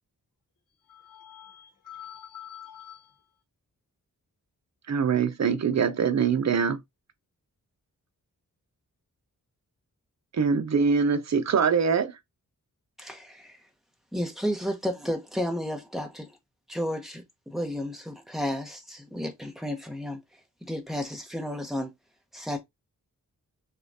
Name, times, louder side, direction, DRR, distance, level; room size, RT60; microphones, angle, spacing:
voice 1, 0.9-3.1, left 10 dB, 70° left, 1.0 m, -46 dB
voice 2, 4.9-6.8 10.3-12.1, right 6 dB, 50° right, 0.7 m, -23 dB
voice 3, 13.0-13.6 14.1-16.3 16.7-20.2 20.6-21.9 22.3-22.6, equal, ahead, 1.0 m, -32 dB
6.6 x 2.5 x 2.7 m
wide cardioid pair, 160°, 34 cm